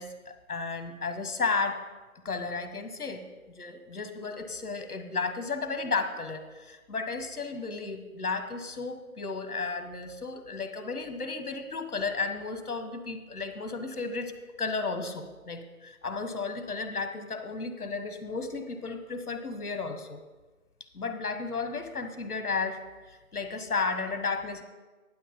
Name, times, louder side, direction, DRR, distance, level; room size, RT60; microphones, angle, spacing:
voice 1, 0.0-1.8 2.2-3.3 3.5-14.3 14.6-20.2 20.9-24.6, left 4 dB, 85° left, 7 dB, 1.4 m, -33 dB
11.0 x 9.4 x 3.8 m, 1.3 s
figure-of-eight pair, 180°, 44 cm